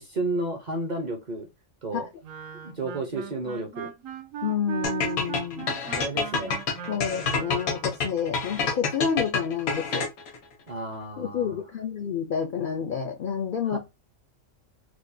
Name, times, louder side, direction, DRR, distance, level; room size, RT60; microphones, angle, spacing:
voice 1, 0.0-1.5 1.8-2.1 2.6-3.9 6.0-6.6 10.7-11.6 13.7-13.8, right 2 dB, 45° right, 0.6 m, -32 dB
Wind instrument woodwind instrument, 2.2-8.0, right 10 dB, 75° right, 1.0 m, -38 dB
voice 2, 4.4-5.8 6.9-10.1 11.2-13.8, left 7 dB, 75° left, 0.4 m, -29 dB
sound 1, 4.8-10.4, left 4 dB, 90° left, 1.3 m, -27 dB
4.6 x 2.2 x 2.6 m
omnidirectional pair, 1.5 m